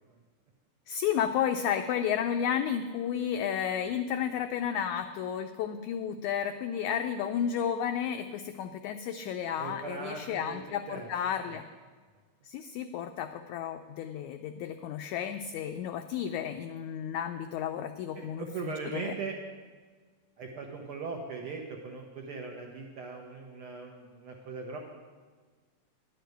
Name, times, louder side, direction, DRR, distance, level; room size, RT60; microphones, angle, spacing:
voice 1, 0.9-11.6 12.4-19.1, left 9 dB, 85° left, 7 dB, 1.7 m, -32 dB
voice 2, 9.6-10.6 10.9-11.1 11.4-11.6 18.2-19.4 20.4-24.8, right 5 dB, 90° right, 0 dB, 1.2 m, -39 dB
11.0 x 6.6 x 9.1 m, 1.5 s
omnidirectional pair, 3.9 m